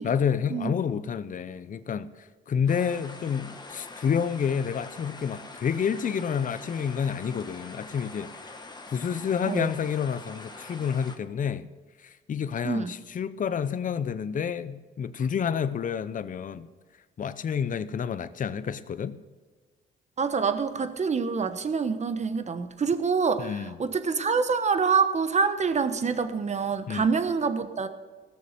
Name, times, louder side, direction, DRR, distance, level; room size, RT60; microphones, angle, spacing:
voice 1, 0.0-2.1 2.5-8.3 8.9-11.7 12.0-16.7 17.2-19.1 23.4-23.8 26.9-27.1, left 7 dB, 40° left, 0.7 m, -29 dB
sound 1, 2.7-11.2, left 3 dB, 20° left, 1.5 m, -44 dB
voice 2, 20.2-27.9, right 5 dB, 35° right, 1.1 m, -26 dB
17.0 x 6.8 x 6.7 m
cardioid pair, 90°, 20 cm